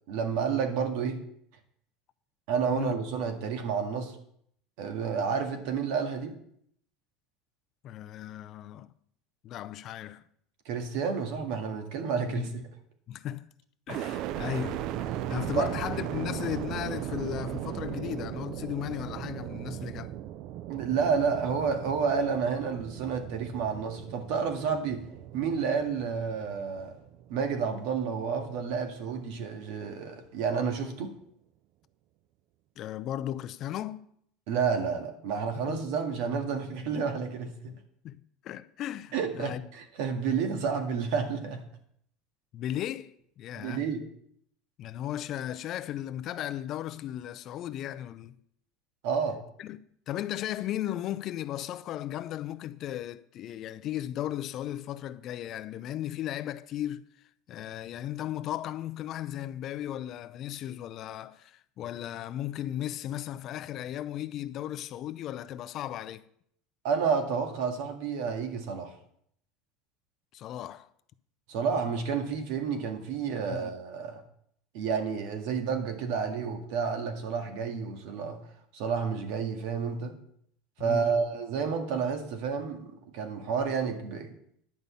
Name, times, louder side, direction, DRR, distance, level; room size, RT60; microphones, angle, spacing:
voice 1, 0.1-1.2 2.5-4.2 4.8-6.4 10.7-12.5 15.6-15.7 20.7-25.0 25.3-27.0 27.3-31.1 34.5-37.7 39.1-41.6 43.6-44.0 49.0-49.4 66.8-68.9 71.5-74.2 74.7-78.4 78.7-80.2 80.8-84.3, right 6 dB, 70° right, 1.9 m, -30 dB
voice 2, 7.8-8.9 9.4-10.2 12.3-12.5 13.1-13.5 13.9-20.1 24.9-25.0 32.8-34.0 35.6-35.8 37.7-37.8 38.0-39.6 42.5-43.9 44.8-48.4 49.6-49.8 50.1-57.0 57.5-66.2 70.3-70.9 73.5-73.8 80.8-81.1, left 12 dB, 40° left, 0.5 m, -36 dB
sound 1, 13.9-27.9 28.4-29.1, right 12 dB, 50° right, 0.4 m, -37 dB
10.5 x 5.4 x 8.4 m
cardioid pair, 155°, 0 cm